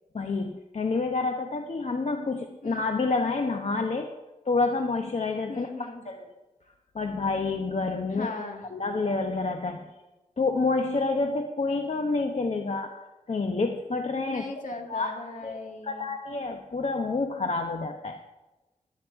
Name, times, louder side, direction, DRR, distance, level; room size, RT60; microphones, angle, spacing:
voice 1, 0.1-4.1 4.4-5.7 6.1-6.3 6.9-8.3 8.7-9.8 10.4-13.0 13.3-14.4 14.9-15.1 15.4-15.6 15.8-18.2, left 3 dB, 55° left, 5 dB, 0.9 m, -28 dB
voice 2, 2.6-3.0 5.5-6.0 8.1-8.7 14.3-16.1, left 3 dB, 70° left, 2 dB, 2.1 m, -38 dB
12.5 x 10.5 x 4.7 m, 1.1 s
cardioid pair, 50°, 14 cm